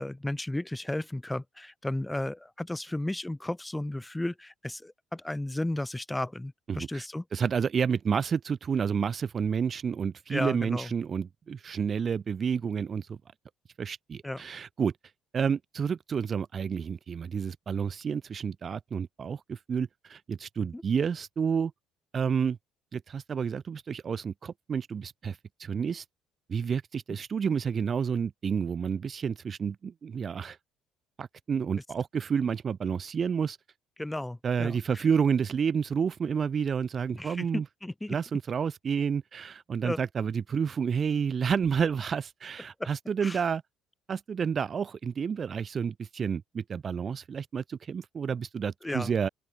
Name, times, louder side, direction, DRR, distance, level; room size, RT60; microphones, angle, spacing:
voice 1, 0.0-7.2 10.3-10.9 14.2-14.4 20.7-20.8 34.0-34.8 37.1-38.2 39.8-40.0 42.8-42.9 43.2-43.4 48.8-49.1, left 1 dB, 10° left, 2.1 m, -34 dB
voice 2, 6.7-13.2 13.8-14.9 15.3-21.7 22.1-22.6 22.9-26.0 26.5-30.6 31.2-33.6 34.4-37.6 38.1-43.6 44.1-49.3, right 6 dB, 45° right, 0.6 m, -30 dB
open air
hypercardioid pair, 65°, 0 cm